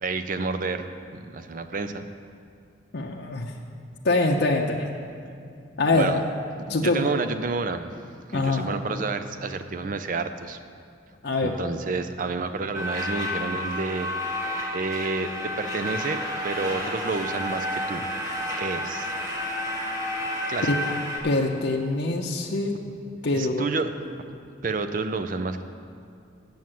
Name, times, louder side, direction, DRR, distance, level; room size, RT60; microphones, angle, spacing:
voice 1, 0.0-2.1 5.9-6.2 6.7-7.9 8.3-10.6 11.4-18.0 18.6-19.1 20.5-20.7 23.3-23.9 24.6-25.6, right 3 dB, 40° right, 9 dB, 0.4 m, -30 dB
voice 2, 2.9-3.5 4.0-4.9 5.8-6.1 6.7-7.1 8.3-8.8 11.2-11.6 20.6-20.8 21.2-22.8 23.2-23.7, left 2 dB, 55° left, -1 dB, 0.6 m, -24 dB
sound 1, 12.7-21.2, equal, 15° right, 1.1 m, -30 dB
7.7 x 7.1 x 7.5 m, 2.5 s
head